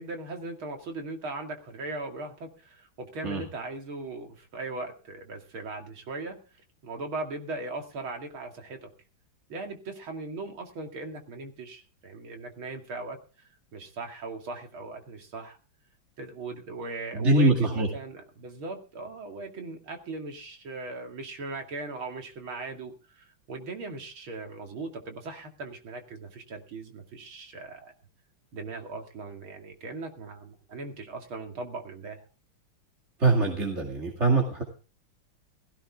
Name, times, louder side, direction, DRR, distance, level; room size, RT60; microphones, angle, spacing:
voice 1, 0.0-6.4 6.8-8.9 9.5-15.6 16.2-27.9 28.5-32.2, right 3 dB, 75° right, 4 dB, 3.2 m, -39 dB
voice 2, 17.1-17.9 33.2-34.6, right 2 dB, 35° right, 0 dB, 2.6 m, -23 dB
17.0 x 15.5 x 3.6 m, 0.34 s
omnidirectional pair, 2.3 m